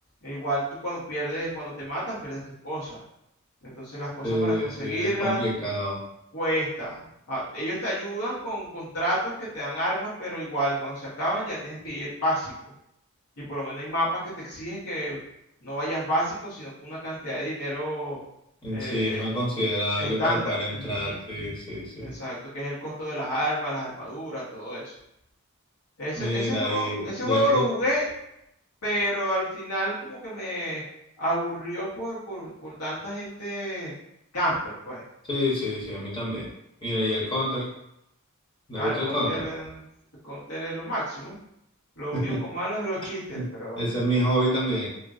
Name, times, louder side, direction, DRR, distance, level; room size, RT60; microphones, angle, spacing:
voice 1, 0.2-3.0 3.6-5.4 6.3-12.5 13.4-15.2 15.6-18.2 18.7-19.2 19.9-21.5 22.0-24.9 26.0-28.1 28.8-30.8 31.2-33.9 34.3-35.0 38.8-39.9 40.2-41.4 42.0-43.8, equal, 80° left, -7 dB, 1.4 m, -30 dB
voice 2, 4.2-6.0 18.6-22.1 26.2-27.6 35.3-36.5 36.8-37.7 38.7-39.5 42.1-42.4 43.3-43.5 43.8-44.9, equal, 25° left, -5 dB, 0.8 m, -28 dB
2.8 x 2.7 x 2.4 m, 0.81 s
head